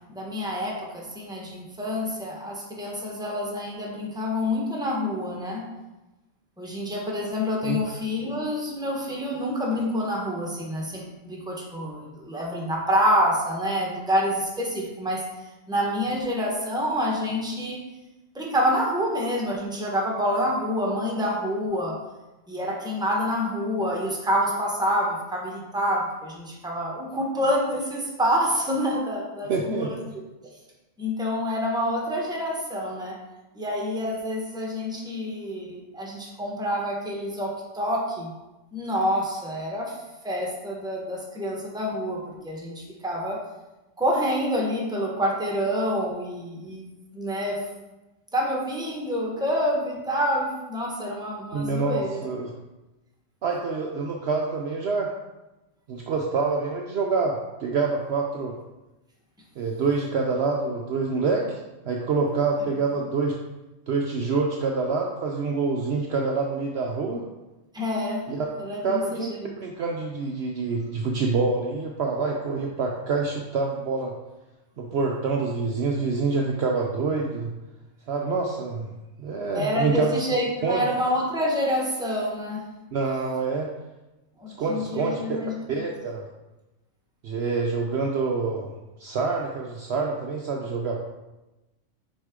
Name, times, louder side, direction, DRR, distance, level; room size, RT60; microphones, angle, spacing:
voice 1, 0.1-5.6 6.6-15.2 15.7-17.8 18.3-21.9 22.5-30.0 31.0-33.1 33.5-38.3 38.7-39.9 40.2-43.4 44.0-46.9 47.1-47.6 48.3-52.2 67.7-68.2 68.6-69.5 79.5-82.6 84.4-85.6, equal, 5° right, -3 dB, 1.0 m, -27 dB
voice 2, 29.5-29.9 51.5-52.5 53.4-55.1 55.9-58.5 59.6-61.6 61.8-63.4 63.9-67.2 68.3-68.5 68.8-74.1 74.8-77.5 78.1-78.9 79.2-80.1 80.6-80.8 82.9-83.7 84.6-85.2 85.7-86.2 87.2-88.7 89.0-91.0, right 4 dB, 65° right, 0 dB, 0.8 m, -26 dB
6.3 x 4.2 x 3.7 m, 1.0 s
omnidirectional pair, 1.4 m